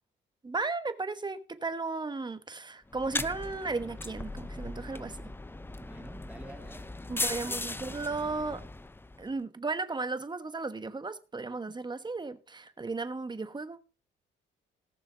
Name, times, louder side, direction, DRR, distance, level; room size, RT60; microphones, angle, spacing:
voice 1, 0.4-5.3 7.1-8.6 9.2-13.8, right 3 dB, 20° right, 1.2 m, -35 dB
sound 1, 2.9-9.3, left 2 dB, 10° left, 0.6 m, -38 dB
voice 2, 5.8-7.6, right 1 dB, 5° right, 2.0 m, -49 dB
18.5 x 6.3 x 3.9 m
cardioid pair, 90°, 20 cm